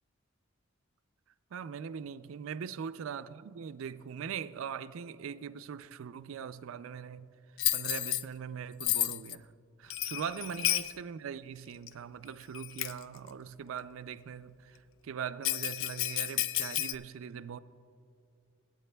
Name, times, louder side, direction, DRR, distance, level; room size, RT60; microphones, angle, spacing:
voice 1, 1.5-7.3 7.7-9.5 9.8-17.6, right 7 dB, 70° right, 0.4 m, -41 dB
Bell, 7.6-8.2 8.8-9.4 9.9-10.9 11.9-12.0 12.5-13.0 15.4-16.9, left 13 dB, 65° left, 0.3 m, -31 dB
23.0 x 9.0 x 2.2 m
head